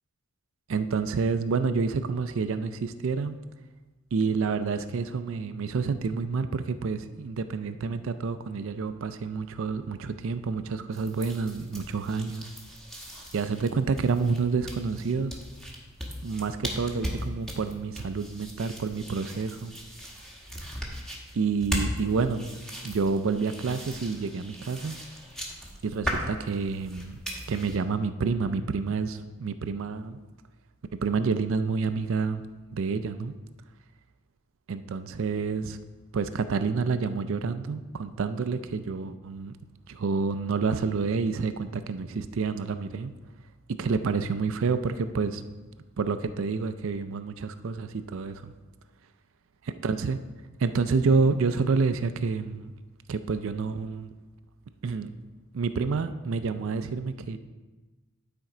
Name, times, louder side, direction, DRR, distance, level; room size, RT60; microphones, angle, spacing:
voice 1, 0.7-3.4 4.1-12.5 13.3-15.4 16.2-19.8 21.3-22.5 22.8-25.0 25.8-27.2 27.5-30.2 31.0-32.4 32.7-33.3 34.7-35.8 36.1-39.6 39.9-43.1 43.7-45.4 46.0-48.5 49.8-50.2 50.6-52.7 53.1-54.1 54.8-55.1 55.5-57.4, right 4 dB, 60° right, 11 dB, 0.4 m, -28 dB
sound 1, 10.9-27.8, equal, 5° left, 1.1 m, -38 dB
10.5 x 4.4 x 4.9 m, 1.2 s
head